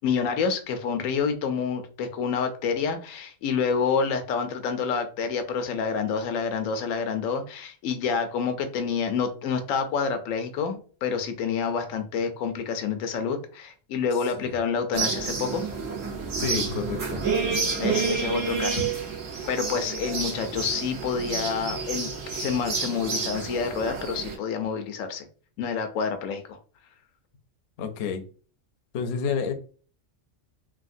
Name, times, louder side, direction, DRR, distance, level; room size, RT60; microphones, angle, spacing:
voice 1, 0.0-15.6 17.8-18.8 19.5-22.1 22.4-25.3 25.6-26.6, left 6 dB, 90° left, 8 dB, 1.0 m, -28 dB
sound 1, 14.9-24.4, right 4 dB, 80° right, 1.4 m, -29 dB
voice 2, 16.3-17.2 22.4-22.5 27.8-28.3 28.9-29.5, left 6 dB, 65° left, 8 dB, 0.7 m, -29 dB
3.4 x 2.2 x 2.5 m, 0.40 s
omnidirectional pair, 1.3 m